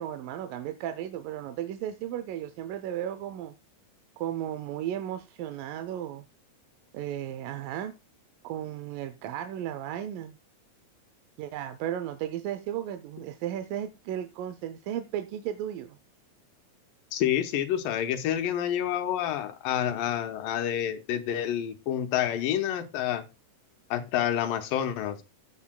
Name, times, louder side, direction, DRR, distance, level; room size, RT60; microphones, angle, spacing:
voice 1, 0.0-3.5 4.2-6.3 6.9-7.9 8.4-10.4 11.4-16.0, right 11 dB, 85° right, 2.3 m, -35 dB
voice 2, 17.1-23.2 23.9-25.2, left 10 dB, 90° left, 2.7 m, -28 dB
15.0 x 7.1 x 2.3 m
omnidirectional pair, 3.9 m